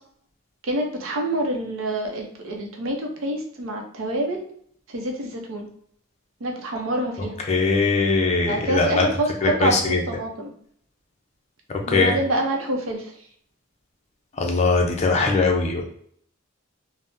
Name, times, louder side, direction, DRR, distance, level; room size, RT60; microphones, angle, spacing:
voice 1, 0.6-4.4 4.9-5.7 6.4-7.4 8.5-10.5 11.9-13.1, right 1 dB, 70° right, 1 dB, 0.6 m, -26 dB
voice 2, 7.5-9.0 9.4-10.0 11.9-12.1 14.4-15.8, left 4 dB, 30° left, 1 dB, 0.4 m, -20 dB
3.5 x 2.0 x 2.6 m, 0.63 s
head